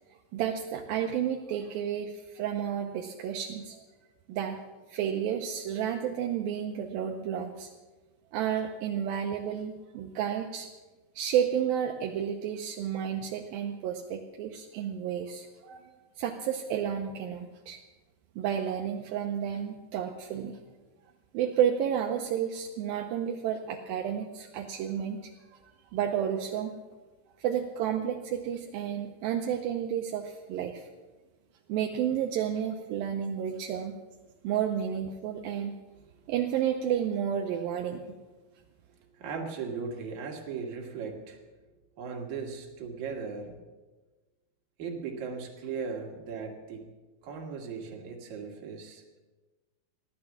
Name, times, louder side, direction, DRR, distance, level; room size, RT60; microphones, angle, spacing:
voice 1, 0.1-3.8 4.3-4.6 4.9-7.7 8.3-10.7 11.2-15.8 16.2-17.8 18.4-20.6 21.3-25.6 25.9-26.7 27.4-30.9 31.7-34.0 34.4-35.8 36.3-38.2, right 9 dB, 80° right, 2 dB, 2.5 m, -31 dB
voice 2, 39.1-41.4 42.0-43.6 44.8-46.9 47.2-49.2, right 5 dB, 55° right, 1 dB, 3.0 m, -38 dB
15.5 x 11.5 x 7.3 m, 1.2 s
omnidirectional pair, 4.5 m